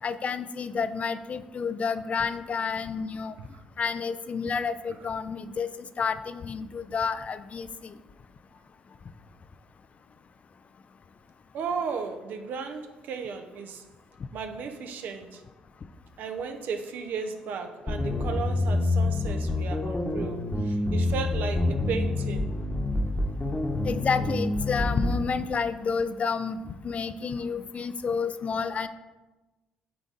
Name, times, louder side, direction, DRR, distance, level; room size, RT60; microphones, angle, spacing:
voice 1, 0.0-3.4 3.8-7.9 23.8-28.9, left 5 dB, 45° left, 12 dB, 0.4 m, -30 dB
voice 2, 11.5-13.8 14.3-15.4 16.2-22.5, right 5 dB, 65° right, 6 dB, 0.7 m, -35 dB
sound 1, 17.9-25.2, left 2 dB, 25° left, 1.1 m, -27 dB
8.7 x 3.6 x 3.9 m, 1.1 s
hypercardioid pair, 50°, 3 cm